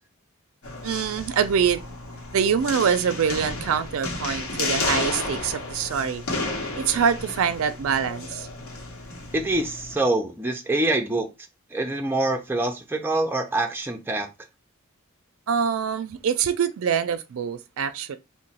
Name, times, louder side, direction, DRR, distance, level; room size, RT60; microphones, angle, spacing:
sound 1, 0.6-10.0, left 2 dB, 85° left, 0.9 m, -32 dB
voice 1, 0.8-1.8 2.3-6.2 6.7-8.5 15.5-18.2, right 7 dB, 75° right, 0.4 m, -24 dB
voice 2, 9.3-11.3 11.7-14.3, right 2 dB, 10° right, 0.4 m, -25 dB
2.9 x 2.1 x 4.0 m
head